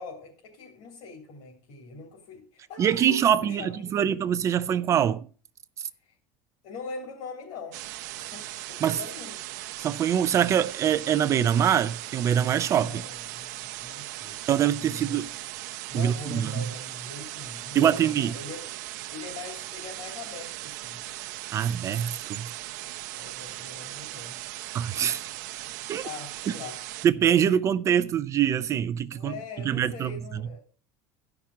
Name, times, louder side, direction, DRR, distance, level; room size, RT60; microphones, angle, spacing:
voice 1, 0.0-4.1 6.0-6.1 6.6-7.8 8.1-9.4 12.8-15.2 15.9-18.7 19.1-21.0 23.1-24.4 26.0-26.8 27.4-27.5 29.1-30.6, left 4 dB, 65° left, 3.2 m, -42 dB
voice 2, 2.8-5.2 8.8-9.0 9.8-13.0 14.5-15.3 15.9-16.6 17.7-18.3 21.5-22.5 24.7-25.3 25.9-26.0 27.0-29.3 29.6-30.1, right 9 dB, 35° right, 0.5 m, -24 dB
sound 1, 7.7-27.1, right 16 dB, 85° right, 0.7 m, -38 dB
13.0 x 5.9 x 6.1 m
supercardioid pair, 135°, 9 cm